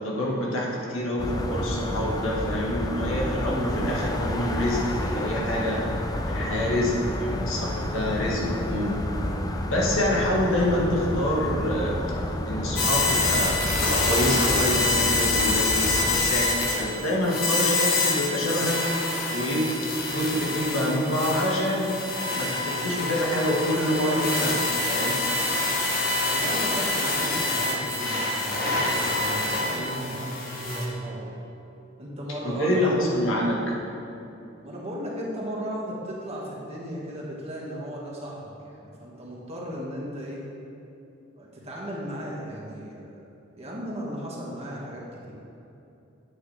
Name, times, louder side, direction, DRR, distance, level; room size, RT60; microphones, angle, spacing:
voice 1, 0.0-5.9 6.3-9.0 9.7-12.0 12.5-18.8 19.3-22.0 22.3-25.2 32.4-33.7, equal, 85° left, -3 dB, 1.7 m, -26 dB
sound 1, 1.2-16.3, left 1 dB, 20° left, 0.5 m, -30 dB
sound 2, 12.8-30.9, left 2 dB, 50° left, 1.3 m, -26 dB
voice 2, 26.2-31.4 32.0-32.9 34.6-40.4 41.4-43.1 43.5-45.3, equal, 30° right, -5 dB, 1.8 m, -36 dB
9.5 x 8.2 x 3.4 m, 2.8 s
head